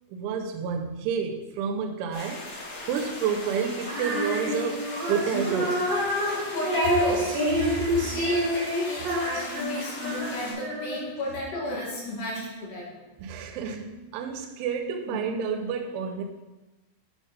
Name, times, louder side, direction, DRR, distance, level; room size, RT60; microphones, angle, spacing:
voice 1, 0.1-2.5 2.9-5.9 13.2-16.2, right 6 dB, 85° right, 2 dB, 3.2 m, -30 dB
sound 1, 2.1-10.5, left 2 dB, 30° left, 3.2 m, -39 dB
Female singing, 3.8-11.2, equal, 50° right, 3.6 m, -28 dB
voice 2, 6.3-7.3 7.9-12.9 15.1-15.2, left 1 dB, 65° left, -5 dB, 4.0 m, -31 dB
10.0 x 5.2 x 5.1 m, 1.1 s
omnidirectional pair, 5.5 m